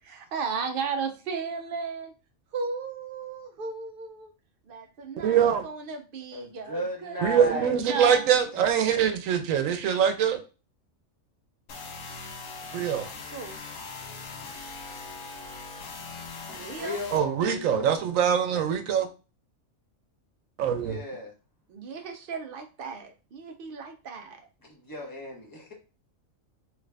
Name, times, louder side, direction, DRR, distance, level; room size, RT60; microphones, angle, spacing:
voice 1, 0.0-2.1 2.5-4.3 4.6-8.4 13.3-13.6 16.5-17.0 21.7-24.5, right 5 dB, 55° right, 5 dB, 0.7 m, -35 dB
voice 2, 5.2-5.6 7.2-10.4 12.7-13.1 17.1-19.1 20.6-21.0, right 8 dB, 90° right, 8 dB, 1.0 m, -23 dB
voice 3, 6.3-7.8 8.5-8.6 16.6-17.9 20.8-21.3 24.6-25.7, left 1 dB, 20° left, 0 dB, 0.8 m, -36 dB
sound 1, 11.7-17.2, left 4 dB, 80° left, 1.1 m, -40 dB
3.1 x 2.4 x 3.2 m, 0.32 s
omnidirectional pair, 1.3 m